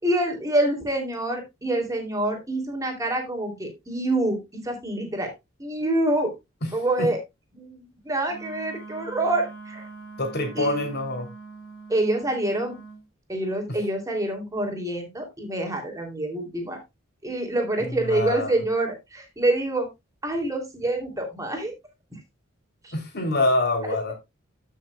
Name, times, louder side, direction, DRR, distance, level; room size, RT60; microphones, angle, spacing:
voice 1, 0.0-5.3 5.6-6.3 6.7-7.2 7.5-9.9 10.5-10.9 11.9-12.7 13.3-16.8 17.2-19.9 20.2-21.7 22.8-22.9, right 1 dB, 15° right, 3.0 m, -26 dB
Wind instrument woodwind instrument, 8.2-13.0, right 3 dB, 75° left, 3.2 m, -43 dB
voice 2, 10.2-11.3 13.7-13.8 17.8-18.5 22.9-24.1, left 2 dB, 55° left, 3.2 m, -25 dB
15.0 x 6.4 x 2.3 m
head